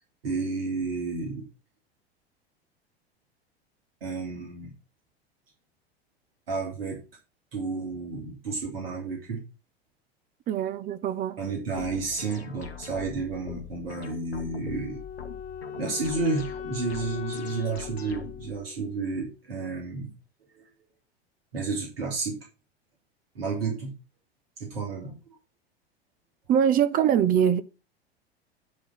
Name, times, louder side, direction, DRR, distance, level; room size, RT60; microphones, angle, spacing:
voice 1, 0.2-1.4 4.0-4.7 6.5-7.0 7.5-9.4 11.4-15.0 15.8-20.1 20.5-20.6 21.5-22.4 23.3-23.9 24.6-25.2, right 4 dB, 65° right, 3.1 m, -31 dB
voice 2, 10.5-11.4 26.5-27.6, right 9 dB, 25° right, 0.7 m, -23 dB
sound 1, 11.8-18.6, left 7 dB, 80° left, 1.3 m, -43 dB
Wind instrument woodwind instrument, 14.3-19.4, left 7 dB, 25° left, 1.4 m, -40 dB
9.8 x 3.9 x 5.8 m
figure-of-eight pair, 85°, 31 cm